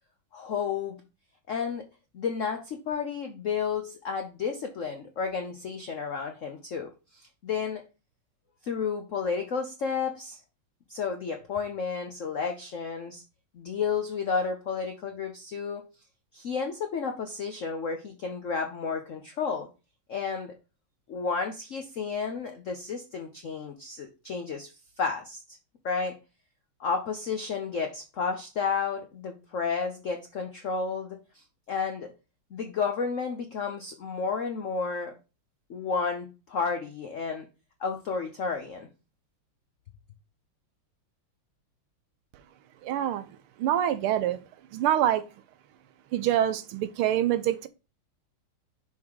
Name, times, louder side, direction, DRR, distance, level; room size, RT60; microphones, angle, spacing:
voice 1, 0.3-1.0 1.5-1.9 2.1-7.8 8.6-10.4 10.9-13.2 13.5-15.9 16.3-19.7 20.1-20.5 21.1-25.4 25.8-26.2 26.8-32.1 32.5-35.1 35.7-37.5 37.8-38.9, left 5 dB, 85° left, 0.6 m, -32 dB
voice 2, 42.8-43.3 43.6-44.4 44.7-45.2 46.1-47.7, right 11 dB, 90° right, 1.6 m, -25 dB
6.2 x 3.7 x 4.6 m
omnidirectional pair, 2.3 m